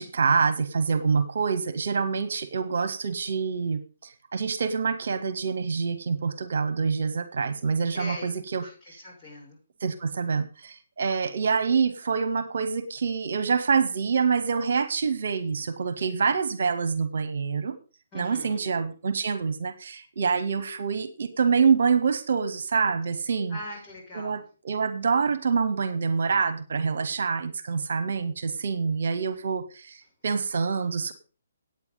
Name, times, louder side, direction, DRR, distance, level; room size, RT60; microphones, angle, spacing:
voice 1, 0.0-9.0 9.8-17.8 18.1-23.6 24.1-24.4 24.6-31.1, right 5 dB, 65° right, 12 dB, 1.2 m, -26 dB
voice 2, 7.9-9.6 18.1-18.7 23.5-24.5, left 1 dB, 25° left, -4 dB, 5.9 m, -41 dB
9.2 x 9.1 x 5.2 m, 0.34 s
figure-of-eight pair, 135°, 0 cm